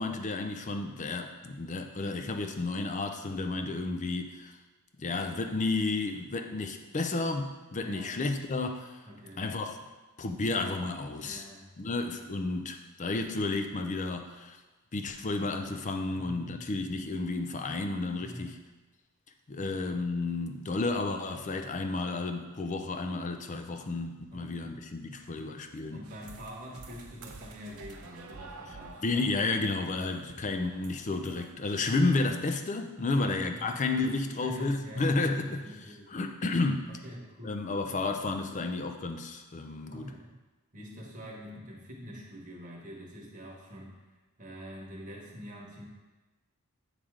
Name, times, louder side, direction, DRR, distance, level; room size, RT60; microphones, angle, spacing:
voice 1, 0.0-4.5 5.0-9.0 9.4-9.8 10.2-11.4 11.8-14.6 14.9-18.6 19.5-26.0 29.0-35.6 36.1-36.9 37.4-40.1, left 3 dB, 35° left, 6 dB, 0.4 m, -32 dB
voice 2, 7.8-8.2 9.0-9.5 11.2-12.2 16.1-16.9 18.2-18.5 24.3-24.7 25.1-25.5 25.9-29.2 30.3-30.5 31.8-32.0 33.2-34.1 34.4-36.1 36.9-37.6 39.9-40.3 40.7-43.9 44.4-45.9, equal, 40° right, -3 dB, 1.2 m, -46 dB
sound 1, 26.0-31.5, right 3 dB, 90° right, 0.6 m, -49 dB
8.6 x 3.3 x 3.7 m, 1.2 s
head